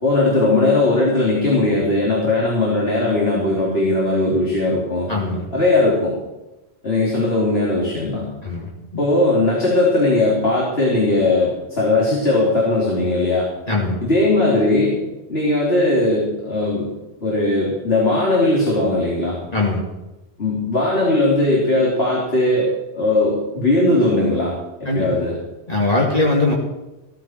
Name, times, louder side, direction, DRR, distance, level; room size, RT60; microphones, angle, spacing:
voice 1, 0.0-5.1 5.5-6.1 6.8-8.3 9.0-13.5 14.0-15.0 15.3-16.9 17.2-19.4 20.4-25.3, left 2 dB, 75° left, -5 dB, 3.5 m, -18 dB
voice 2, 5.1-5.5 8.4-8.7 13.7-14.0 19.5-19.8 24.9-25.1 25.7-26.5, left 2 dB, 40° left, -3 dB, 2.3 m, -20 dB
16.5 x 14.0 x 4.5 m, 1.0 s
omnidirectional pair, 1.1 m